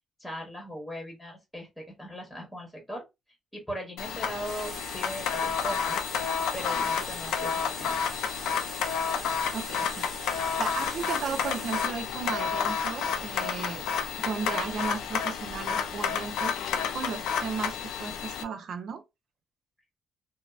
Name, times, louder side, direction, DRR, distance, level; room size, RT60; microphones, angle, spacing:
voice 1, 0.2-3.0 3.5-6.0 6.5-8.0, equal, 5° left, 1.0 m, -39 dB
sound 1, 4.0-18.4, left 7 dB, 85° left, 0.4 m, -30 dB
sound 2, 4.4-11.9, right 2 dB, 45° right, 1.1 m, -43 dB
voice 2, 9.5-10.3 10.6-13.9 14.2-16.6 16.9-19.0, right 5 dB, 65° right, 0.5 m, -35 dB
2.7 x 2.0 x 2.3 m
cardioid pair, 90°, 0 cm